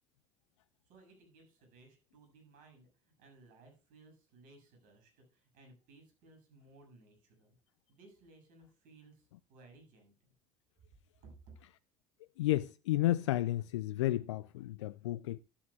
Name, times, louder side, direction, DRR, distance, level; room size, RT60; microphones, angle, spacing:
voice 1, 0.8-7.6 7.9-10.1 11.2-11.6, right 3 dB, 65° right, 7.1 m, -60 dB
voice 2, 12.4-15.4, left 15 dB, 80° left, 0.4 m, -32 dB
13.0 x 12.0 x 2.4 m
hypercardioid pair, 65°, 15 cm